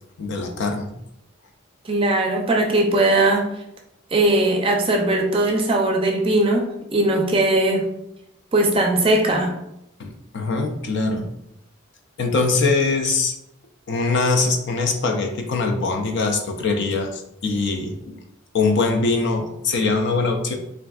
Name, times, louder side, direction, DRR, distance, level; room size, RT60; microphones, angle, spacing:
voice 1, 0.2-0.9 10.0-11.3 12.2-13.3 13.9-18.2 18.5-20.6, left 3 dB, 60° left, 4 dB, 0.4 m, -22 dB
voice 2, 1.9-3.5 4.1-6.6 6.9-7.9 8.5-9.5, right 2 dB, 25° right, 1 dB, 0.4 m, -19 dB
3.4 x 2.4 x 2.3 m, 0.83 s
head